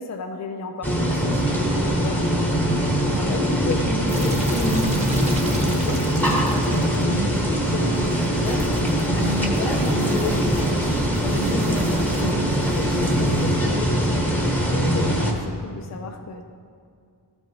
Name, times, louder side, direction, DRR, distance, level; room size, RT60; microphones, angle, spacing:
voice 1, 0.0-2.3 10.2-10.3 14.7-16.4, left 3 dB, 40° left, 4 dB, 0.5 m, -34 dB
sound 1, 0.8-15.3, equal, 5° left, 1.2 m, -22 dB
voice 2, 2.7-8.7 9.0-10.7 11.2-14.3, left 1 dB, 85° left, -2 dB, 1.7 m, -30 dB
sound 2, 4.1-13.6, equal, 15° right, 1.1 m, -30 dB
14.0 x 5.4 x 2.9 m, 2.3 s
wide cardioid pair, 95°, 41 cm